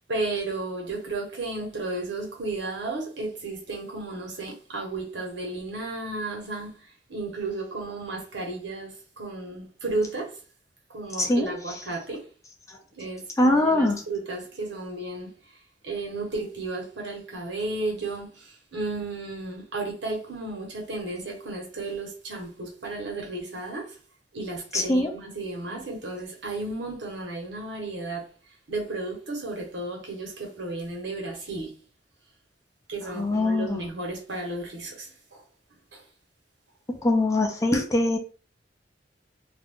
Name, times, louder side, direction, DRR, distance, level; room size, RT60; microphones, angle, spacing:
voice 1, 0.1-6.7 7.1-10.4 10.9-12.3 12.9-15.3 15.8-24.0 24.3-28.3 28.7-31.8 32.9-35.4 35.9-36.0, right 2 dB, 80° right, 1.1 m, -33 dB
voice 2, 11.2-11.7 13.4-14.0 24.7-25.1 33.1-33.8 37.0-38.2, left 1 dB, 15° left, 0.5 m, -22 dB
2.5 x 2.3 x 3.6 m
head